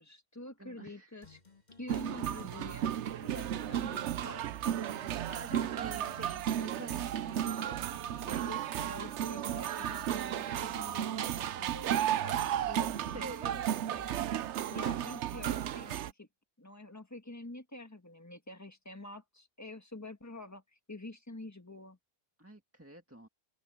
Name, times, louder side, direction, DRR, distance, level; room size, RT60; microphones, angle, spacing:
voice 1, 0.0-1.4 1.7-2.9 3.2-4.5 8.4-12.4 12.7-13.5 14.7-16.3 16.6-20.6 20.9-22.0, left 2 dB, 15° left, 1.7 m, -47 dB
voice 2, 0.6-1.2 5.3-7.8 8.2-8.5 12.8-12.9 13.1-13.8 22.4-23.3, right 1 dB, 10° right, 1.8 m, -48 dB
sound 1, 1.2-14.1, left 3 dB, 40° left, 2.1 m, -57 dB
sound 2, 1.9-16.1, right 10 dB, 90° right, 1.0 m, -34 dB
open air
omnidirectional pair, 1.1 m